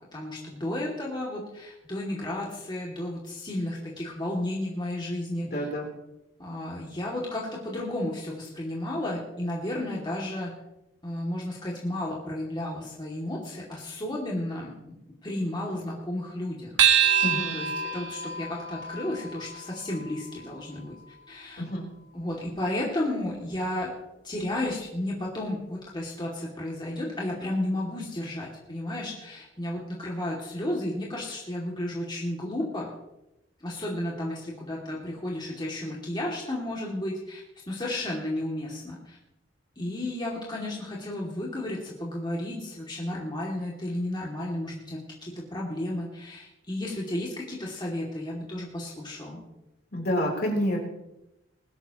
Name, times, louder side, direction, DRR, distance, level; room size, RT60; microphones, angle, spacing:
voice 1, 0.1-5.7 6.4-10.5 11.0-14.7 15.2-16.7 17.5-20.9 21.3-21.6 22.1-23.9 24.2-32.9 33.6-37.4 37.7-39.2 39.8-49.4, left 1 dB, 25° left, -3 dB, 2.5 m, -33 dB
voice 2, 5.5-5.9 17.2-17.6 21.6-21.9 49.9-50.8, equal, 55° left, 0 dB, 3.6 m, -28 dB
sound 1, 16.8-21.5, right 8 dB, 75° right, 1.6 m, -27 dB
20.5 x 12.5 x 3.0 m, 0.90 s
head